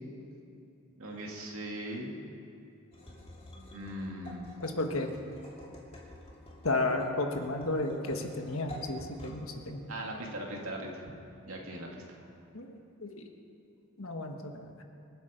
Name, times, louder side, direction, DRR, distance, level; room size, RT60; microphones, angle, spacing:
voice 1, 1.0-2.1 3.7-4.5 9.9-11.1 11.5-12.2, right 1 dB, 70° right, 0 dB, 2.5 m, -39 dB
sound 1, 2.9-10.8, equal, 25° left, 2.3 m, -50 dB
voice 2, 4.6-5.1 6.6-9.9 12.5-12.7 13.0-13.3 14.0-14.7, left 2 dB, 70° left, 4 dB, 1.5 m, -33 dB
25.5 x 8.8 x 5.2 m, 2.7 s
head